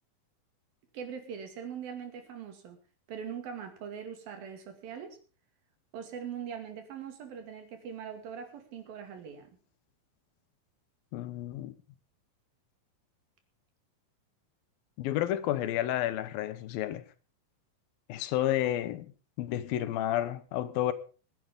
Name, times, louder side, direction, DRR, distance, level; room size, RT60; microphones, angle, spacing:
voice 1, 0.9-2.8 3.1-5.2 5.9-9.6, right 7 dB, 80° right, 4.1 m, -41 dB
voice 2, 11.1-11.7 15.0-17.0 18.1-19.1 19.4-20.9, left 12 dB, 85° left, 2.8 m, -31 dB
24.0 x 10.5 x 3.7 m
omnidirectional pair, 4.1 m